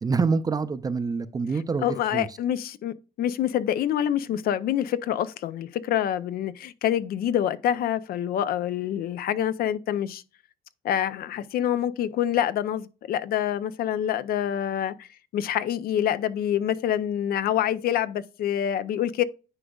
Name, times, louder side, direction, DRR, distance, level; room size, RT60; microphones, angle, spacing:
voice 1, 0.0-2.4, right 4 dB, 20° right, 0.5 m, -26 dB
voice 2, 1.8-10.2 10.8-15.1 15.3-19.2, left 10 dB, 60° left, 0.6 m, -26 dB
9.8 x 5.0 x 2.3 m
cardioid pair, 110°, 17 cm